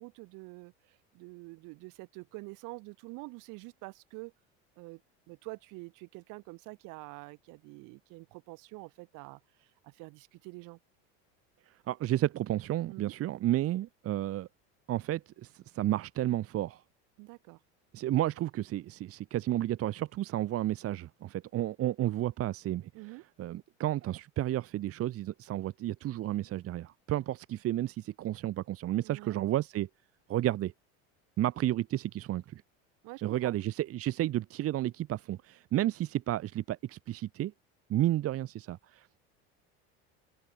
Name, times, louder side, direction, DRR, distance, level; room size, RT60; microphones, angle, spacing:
voice 1, 0.0-4.3 4.8-5.0 5.3-10.8 12.9-13.1 17.2-17.6 22.9-23.2 29.0-29.4 33.0-33.5, right 26 dB, 65° right, 2.6 m, -47 dB
voice 2, 11.9-14.5 14.9-16.8 17.9-29.9 30.3-30.7 31.4-32.6 33.2-37.5 37.9-39.2, right 14 dB, 45° right, 1.2 m, -32 dB
supercardioid pair, 110°, 33 cm